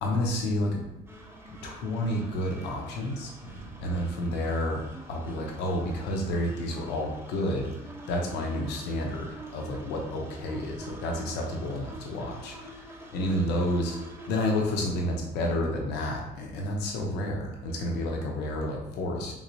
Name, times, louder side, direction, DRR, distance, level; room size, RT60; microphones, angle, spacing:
voice 1, 0.0-0.8 1.6-12.9 13.1-19.4, left 1 dB, 90° left, 0 dB, 0.6 m, -30 dB
sound 1, 1.1-15.0, right 2 dB, 15° right, 0.6 m, -47 dB
3.5 x 3.1 x 2.6 m, 0.93 s
cardioid pair, 110°, 17 cm